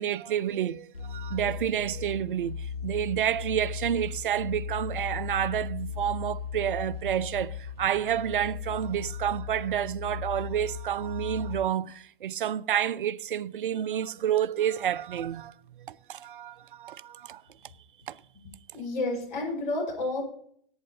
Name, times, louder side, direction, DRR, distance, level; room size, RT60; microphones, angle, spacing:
voice 1, 0.0-17.4 18.1-18.2, right 10 dB, 60° right, 0.5 m, -29 dB
sound 1, 0.9-11.6, left 6 dB, 85° left, 2.5 m, -37 dB
voice 2, 18.7-20.2, left 2 dB, 55° left, 5.3 m, -30 dB
18.0 x 8.7 x 2.8 m
figure-of-eight pair, 105°, 29 cm